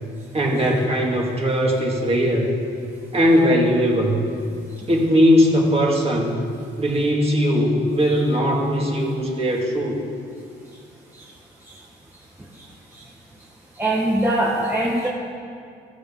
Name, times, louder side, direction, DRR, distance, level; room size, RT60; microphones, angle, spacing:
voice 1, 0.3-2.6 3.1-4.2 4.9-6.5 6.8-10.0, equal, 30° right, -1 dB, 2.5 m, -19 dB
voice 2, 13.8-15.1, right 1 dB, 10° right, -4 dB, 1.4 m, -21 dB
15.5 x 12.5 x 3.9 m, 2.3 s
cardioid pair, 90°, 20 cm